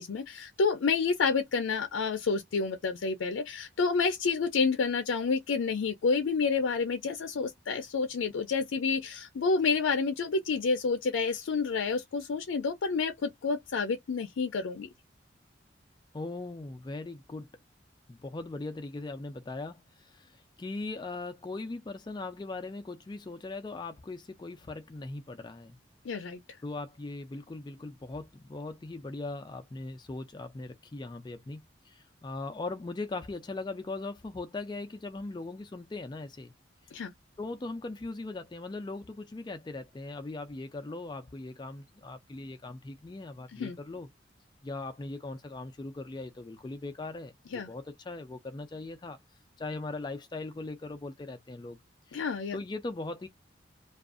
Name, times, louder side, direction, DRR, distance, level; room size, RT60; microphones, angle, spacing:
voice 1, 0.0-14.9 26.1-26.4 36.9-37.1 43.5-43.8 47.5-47.7 52.1-52.6, left 4 dB, 90° left, 0.4 m, -29 dB
voice 2, 16.1-17.5 18.1-25.8 26.6-36.5 37.4-44.1 44.6-49.2 49.6-51.8 52.1-52.2 52.5-53.3, left 2 dB, 25° left, 0.3 m, -39 dB
2.5 x 2.3 x 2.4 m
head